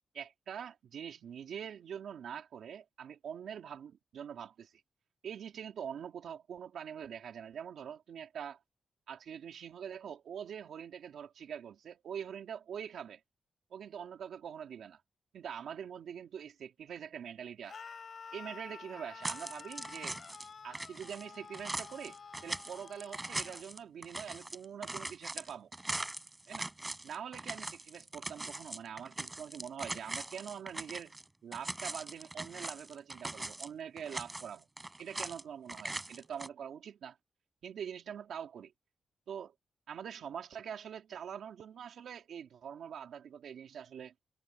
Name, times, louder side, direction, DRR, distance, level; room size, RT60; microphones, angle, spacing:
voice 1, 0.1-4.7 5.2-8.6 9.1-13.2 13.7-15.0 15.3-17.8 18.3-20.2 20.6-22.2 22.4-25.7 26.5-26.7 27.0-31.2 31.4-34.7 35.0-37.2 37.6-38.7 39.3-39.5 39.9-44.1, right 8 dB, 85° right, 2.5 m, -44 dB
Screaming, 17.7-23.6, left 6 dB, 45° left, 5.2 m, -50 dB
sound 1, 19.2-20.5 20.7-31.2 31.5-33.7 34.0-35.4 35.7-36.5, right 2 dB, 15° right, 7.7 m, -41 dB
wide cardioid pair, 140°, 0 cm